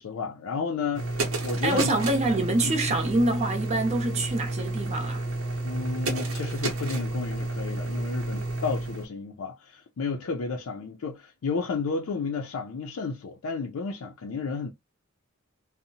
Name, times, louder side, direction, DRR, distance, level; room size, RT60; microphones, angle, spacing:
voice 1, 0.0-2.0 2.6-3.0 5.6-14.7, left 4 dB, 85° left, 0.4 m, -32 dB
sound 1, 0.9-9.1, right 2 dB, 70° right, 0.7 m, -31 dB
voice 2, 1.6-5.3, right 2 dB, 30° right, 0.6 m, -26 dB
2.7 x 2.0 x 2.6 m
head